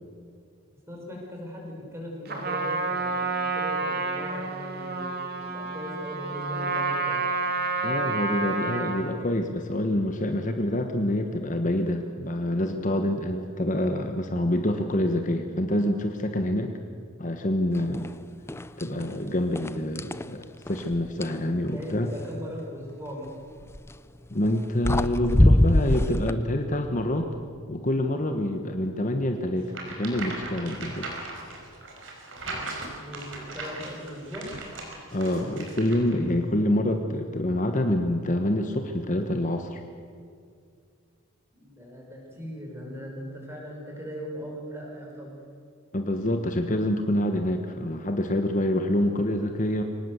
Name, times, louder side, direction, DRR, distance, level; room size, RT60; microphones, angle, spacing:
voice 1, 0.9-7.2 18.7-19.1 21.7-23.3 32.4-34.5 36.5-37.0 41.5-45.3, equal, 15° right, -1 dB, 5.7 m, -39 dB
Trumpet, 2.3-9.1, right 3 dB, 50° right, 2.9 m, -29 dB
voice 2, 7.8-16.7 17.2-18.1 18.8-22.1 24.3-27.3 27.7-29.7 30.0-31.1 35.1-39.8 45.9-49.8, left 1 dB, 35° left, 5 dB, 1.3 m, -26 dB
sound 1, 17.9-18.1 18.5-19.1 19.6-21.4 23.6-23.9 24.6-24.7 24.8-26.3, left 1 dB, 10° left, 0.5 m, -23 dB
sound 2, 29.7-36.1, right 2 dB, 65° right, 5.1 m, -38 dB
24.0 x 19.0 x 8.0 m, 2.2 s
head